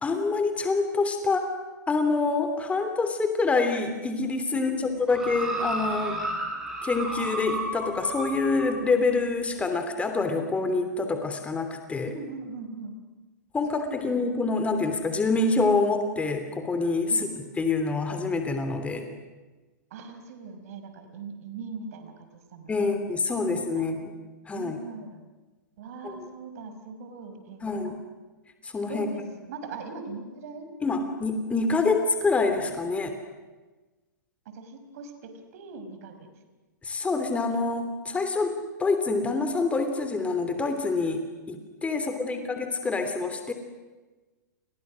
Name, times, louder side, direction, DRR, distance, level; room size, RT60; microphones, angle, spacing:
voice 1, 0.0-1.5 1.9-4.7 5.1-6.2 6.8-12.1 13.5-17.1 17.6-19.0 22.7-24.1 24.5-24.8 26.0-26.3 27.6-28.0 28.6-29.1 30.8-33.1 36.8-38.5 38.8-41.2 41.5-43.5, left 3 dB, 10° left, 7 dB, 3.1 m, -26 dB
voice 2, 4.5-4.9 12.1-13.0 13.7-14.3 17.1-17.3 19.9-22.3 22.5-22.9 23.4-24.0 24.5-25.2 25.8-27.9 28.9-30.7 34.5-36.3 42.0-42.5, right 4 dB, 50° right, 8 dB, 5.4 m, -41 dB
sound 1, 5.1-8.7 9.5-9.6, right 1 dB, 5° right, 7.5 m, -32 dB
30.0 x 30.0 x 6.4 m, 1.2 s
figure-of-eight pair, 105°, 10 cm